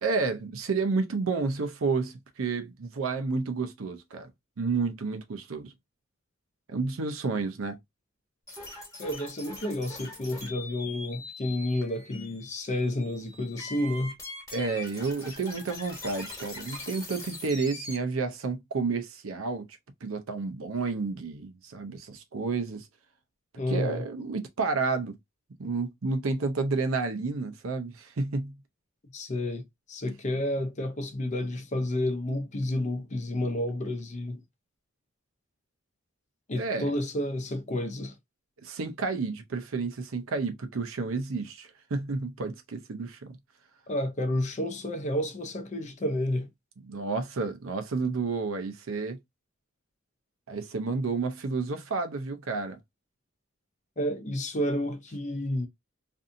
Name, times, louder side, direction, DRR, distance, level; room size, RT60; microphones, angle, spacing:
voice 1, 0.0-4.3 4.6-5.7 6.7-7.8 14.5-19.7 20.0-22.9 23.7-25.2 25.6-28.5 36.6-36.9 38.6-43.4 46.9-49.2 50.5-52.8, right 4 dB, 85° right, 0.6 m, -30 dB
sound 1, 8.5-18.0, left 2 dB, 15° left, 1.2 m, -42 dB
voice 2, 9.0-14.1 23.6-24.0 29.1-34.4 36.5-38.1 43.9-46.5 54.0-55.7, left 1 dB, 35° left, 0.6 m, -30 dB
2.6 x 2.5 x 2.5 m
head